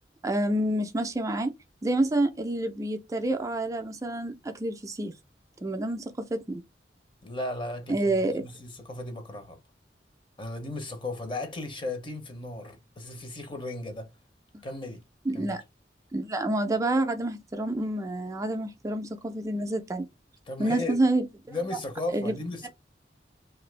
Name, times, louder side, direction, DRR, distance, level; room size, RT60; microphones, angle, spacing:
voice 1, 0.2-1.5 1.8-5.1 5.6-6.6 7.9-8.5 15.3-15.6 16.1-20.1 20.6-21.6 22.1-22.4, right 1 dB, 20° right, 0.3 m, -28 dB
voice 2, 7.2-9.6 10.4-14.1 14.6-15.0 15.3-15.6 20.5-21.0 21.5-22.7, left 2 dB, 30° left, 0.7 m, -36 dB
2.7 x 2.5 x 3.1 m
head